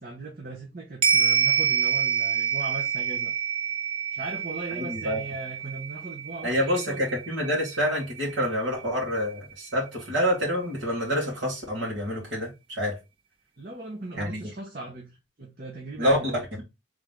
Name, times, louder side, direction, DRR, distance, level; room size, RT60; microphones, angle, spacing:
voice 1, 0.0-3.3 4.1-7.1 13.6-16.4, right 3 dB, 45° right, 0.9 m, -38 dB
sound 1, 1.0-9.6 9.9-10.0, right 7 dB, 25° right, 0.4 m, -27 dB
voice 2, 4.8-5.2 6.4-13.0 14.2-14.4 16.0-16.2, equal, 70° right, 2.0 m, -27 dB
3.6 x 3.2 x 3.6 m
head